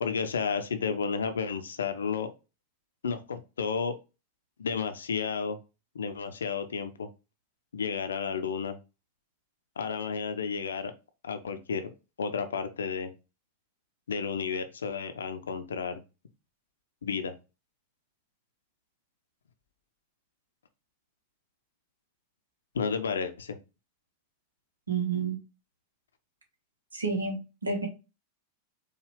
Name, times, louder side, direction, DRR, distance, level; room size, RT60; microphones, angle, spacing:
voice 1, 0.0-2.3 3.0-4.0 4.6-5.6 5.9-7.1 7.7-8.8 9.8-10.9 11.2-11.9 12.2-13.1 14.1-16.0 17.0-17.3 22.7-23.6, left 5 dB, 70° left, 9 dB, 0.5 m, -32 dB
voice 2, 24.9-25.4 26.9-27.9, right 4 dB, 75° right, 4 dB, 1.0 m, -30 dB
4.9 x 2.4 x 3.1 m, 0.29 s
figure-of-eight pair, 90°, 0 cm